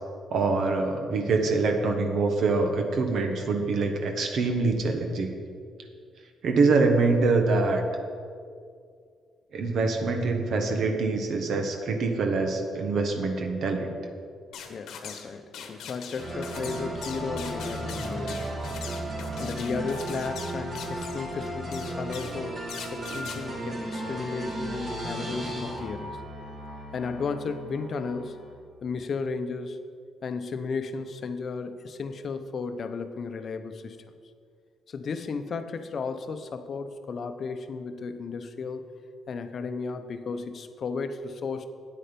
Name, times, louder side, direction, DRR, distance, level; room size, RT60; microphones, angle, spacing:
voice 1, 0.3-5.3 6.4-7.8 9.5-14.0, right 3 dB, 65° right, 4 dB, 1.2 m, -25 dB
sound 1, 14.5-15.3 15.5-21.3 21.7-22.4 22.7-23.4, left 7 dB, 80° left, 1.1 m, -42 dB
voice 2, 14.7-18.8 19.4-26.2 26.9-28.4 28.8-29.8 30.2-34.0 34.9-38.8 39.3-41.7, left 4 dB, 50° left, 8 dB, 0.7 m, -34 dB
sound 2, 16.2-28.5, right 1 dB, 50° right, 2.7 m, -35 dB
8.9 x 8.6 x 5.3 m, 2.2 s
cardioid pair, 90°, 0 cm